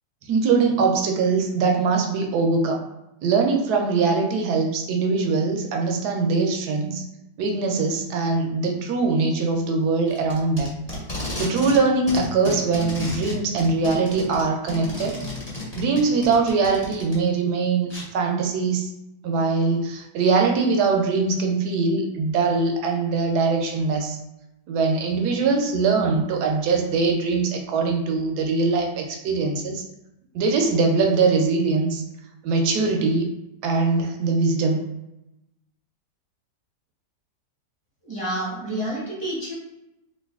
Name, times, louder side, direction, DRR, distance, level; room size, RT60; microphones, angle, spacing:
voice 1, 0.3-2.8 3.2-7.0 7.4-10.7 11.1-15.2 15.7-18.9 19.2-24.2 24.7-29.8 30.3-32.0 32.4-33.3 33.6-34.8, right 4 dB, 75° right, 2 dB, 1.1 m, -22 dB
Packing tape duct tape, 10.1-11.8 12.1-17.1 17.9-18.0, left 1 dB, 20° left, 1.0 m, -32 dB
voice 2, 38.0-39.5, right 1 dB, 25° right, -7 dB, 0.6 m, -29 dB
3.1 x 2.6 x 3.4 m, 0.89 s
omnidirectional pair, 1.8 m